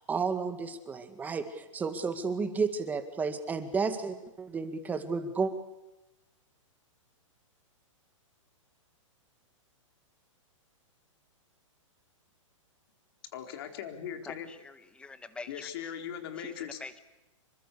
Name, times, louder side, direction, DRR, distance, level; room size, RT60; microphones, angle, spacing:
voice 1, 0.1-5.5, right 5 dB, 10° right, 9 dB, 2.0 m, -32 dB
voice 2, 13.3-14.5 15.5-16.8, left 9 dB, 45° left, 5 dB, 4.2 m, -39 dB
voice 3, 14.3-15.9 16.4-16.5 16.8-17.0, left 3 dB, 5° left, 11 dB, 1.4 m, -45 dB
27.0 x 24.0 x 6.9 m, 0.98 s
hypercardioid pair, 160°, 17 cm